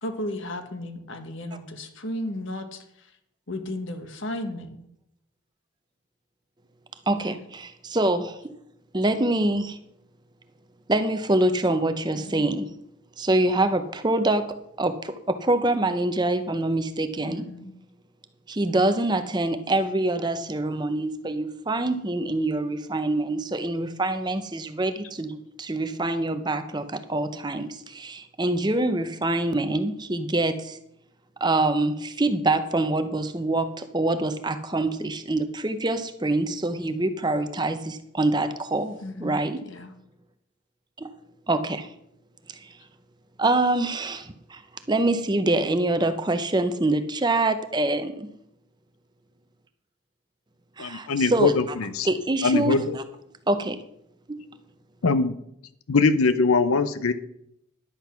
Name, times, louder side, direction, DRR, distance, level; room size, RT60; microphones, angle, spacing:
voice 1, 0.0-3.1 3.5-4.8 7.1-7.4 12.1-12.5 17.2-17.7 39.0-39.9, left 1 dB, 60° left, 7 dB, 1.4 m, -35 dB
voice 2, 7.1-8.5 8.9-9.8 10.9-12.7 13.2-17.5 18.5-30.8 31.4-39.6 41.0-41.1 41.5-41.9 42.5-42.7 43.4-44.6 44.9-48.3 50.8-51.5 52.0-53.0 53.5-53.8 54.3-54.4, right 2 dB, 20° right, 10 dB, 0.6 m, -25 dB
voice 3, 50.8-52.1 52.4-53.0 55.0-55.3 55.9-57.1, left 4 dB, 85° left, 12 dB, 0.6 m, -22 dB
11.0 x 8.0 x 5.7 m, 0.76 s
head